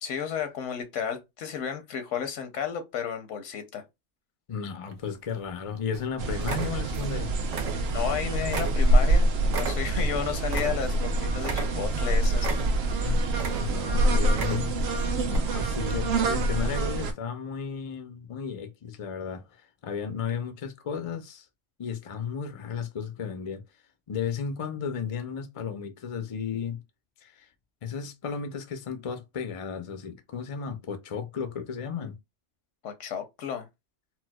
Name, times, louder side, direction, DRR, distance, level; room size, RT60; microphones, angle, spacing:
voice 1, 0.0-3.8 7.9-9.3 9.5-12.9 32.8-33.7, left 8 dB, 85° left, 1.0 m, -33 dB
voice 2, 4.5-7.3 13.0-13.2 13.6-14.8 15.3-19.5 19.8-21.5 21.8-23.6 24.1-26.8 27.2-27.5 27.8-32.2, left 6 dB, 60° left, 0.3 m, -34 dB
sound 1, 4.9-5.6 5.9-6.1 6.4-7.2 7.4-8.2 8.5-11.1 11.4-12.0 12.4-13.0 13.3-13.9 14.3-14.9 15.3-15.4, right 5 dB, 85° right, 1.1 m, -35 dB
sound 2, 6.2-17.1, right 1 dB, 65° right, 0.9 m, -25 dB
4.3 x 2.0 x 2.2 m
omnidirectional pair, 1.2 m